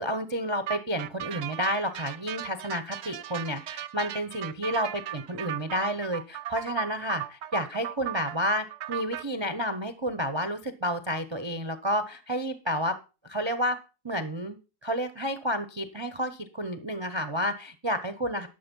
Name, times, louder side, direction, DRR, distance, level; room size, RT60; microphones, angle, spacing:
voice 1, 0.0-13.0 13.2-13.8 14.0-18.5, equal, 30° right, 11 dB, 0.5 m, -30 dB
sound 1, 0.7-9.2, right 12 dB, 75° right, 1.2 m, -37 dB
11.5 x 6.5 x 5.3 m, 0.32 s
omnidirectional pair, 1.7 m